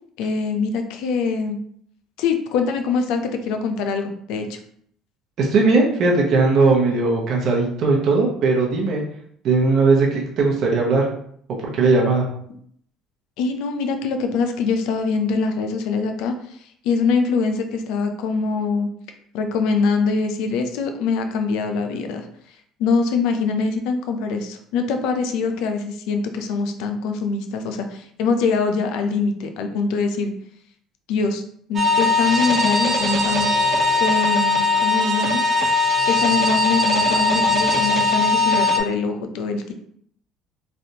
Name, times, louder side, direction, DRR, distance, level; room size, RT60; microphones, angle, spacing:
voice 1, 0.2-1.6 2.2-4.6 13.4-16.4 16.8-18.9 19.3-22.3 22.8-30.3 31.1-31.4 31.7-33.5 34.0-35.5 36.1-39.7, left 4 dB, 75° left, 6 dB, 0.5 m, -23 dB
voice 2, 5.4-9.0 9.4-11.1 11.5-12.2, right 3 dB, 55° right, -2 dB, 0.9 m, -18 dB
sound 1, 31.8-38.8, left 3 dB, 35° right, 0.5 m, -19 dB
3.3 x 2.5 x 2.8 m, 0.64 s
supercardioid pair, 95°, 0 cm